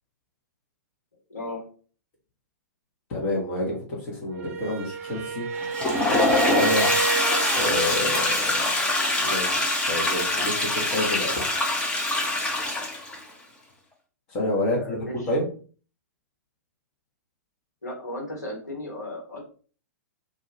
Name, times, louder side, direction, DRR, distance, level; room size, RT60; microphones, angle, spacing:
voice 1, 1.3-1.7 14.6-15.3 17.8-19.4, left 1 dB, 75° left, -3 dB, 1.3 m, -35 dB
voice 2, 3.1-5.5 6.5-7.0 7.6-8.4 9.2-9.5 9.9-11.4 14.3-15.0 15.3-15.5, left 1 dB, 35° left, -3 dB, 1.0 m, -28 dB
sound 1, 4.3-7.9, right 5 dB, 55° right, 0.5 m, -29 dB
Toilet flush, 5.6-13.2, left 2 dB, 10° left, 0.6 m, -24 dB
2.5 x 2.3 x 3.0 m, 0.40 s
figure-of-eight pair, 110°, 9 cm